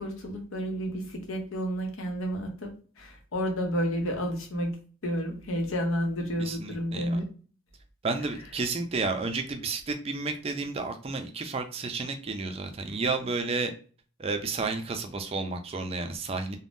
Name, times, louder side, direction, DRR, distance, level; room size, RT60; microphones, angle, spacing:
voice 1, 0.0-4.8 5.0-7.2, equal, 80° left, 3 dB, 0.8 m, -31 dB
voice 2, 6.4-7.2 8.0-13.7 14.2-16.6, right 3 dB, 30° right, 6 dB, 0.3 m, -31 dB
3.4 x 2.1 x 2.5 m, 0.41 s
head